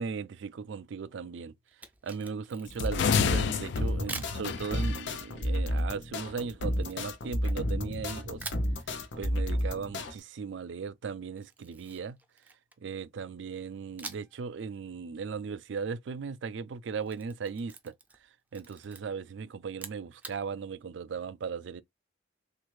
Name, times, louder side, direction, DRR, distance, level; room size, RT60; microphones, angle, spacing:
voice 1, 0.0-1.5 2.0-8.4 9.2-12.2 12.8-17.9 18.5-21.8, right 5 dB, 80° right, 0.4 m, -37 dB
Camera, 1.7-3.2 4.1-4.4 6.8-8.0 8.4-8.7 11.4-12.9 14.0-14.4 14.7-14.8 16.8-18.2 18.5-19.0 19.7-20.4, right 3 dB, 10° right, 0.4 m, -44 dB
sound 1, 2.7-10.1, left 1 dB, 85° left, 0.7 m, -32 dB
sound 2, 2.9-5.2, left 6 dB, 65° left, 0.3 m, -29 dB
3.3 x 2.4 x 3.1 m
head